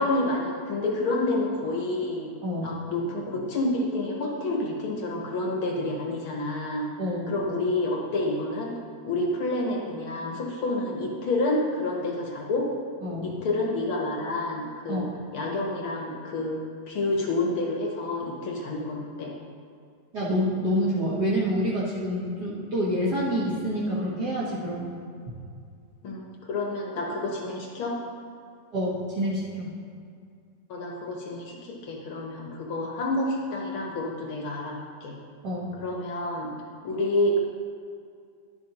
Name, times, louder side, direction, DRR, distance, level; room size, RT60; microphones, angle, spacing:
voice 1, 0.0-2.3 2.6-6.9 7.3-8.7 9.1-12.7 13.2-15.1 15.3-19.3 26.0-28.0 30.7-35.1 35.8-36.5 36.8-37.4, left 2 dB, 60° left, -1 dB, 1.4 m, -29 dB
voice 2, 7.0-7.3 13.0-13.3 14.9-15.1 20.1-24.9 28.7-29.7 35.4-35.8, equal, 55° right, -8 dB, 1.2 m, -27 dB
11.5 x 11.5 x 2.9 m, 2.3 s
omnidirectional pair, 3.6 m